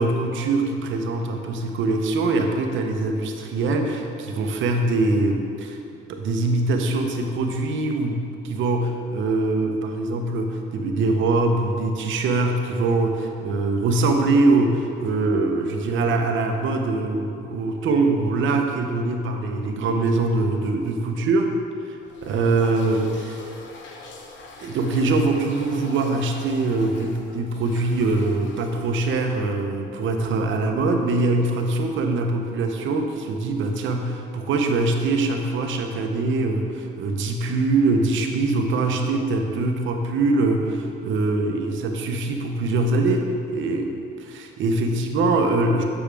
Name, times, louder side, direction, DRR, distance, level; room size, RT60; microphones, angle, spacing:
voice 1, 0.0-5.8 6.1-21.5 22.2-23.4 24.6-43.9 44.2-45.8, right 2 dB, 75° right, 4 dB, 0.8 m, -23 dB
sound 1, 22.0-29.6, left 3 dB, 70° left, 0.9 m, -44 dB
7.1 x 7.0 x 3.4 m, 2.6 s
cardioid pair, 90°, 20 cm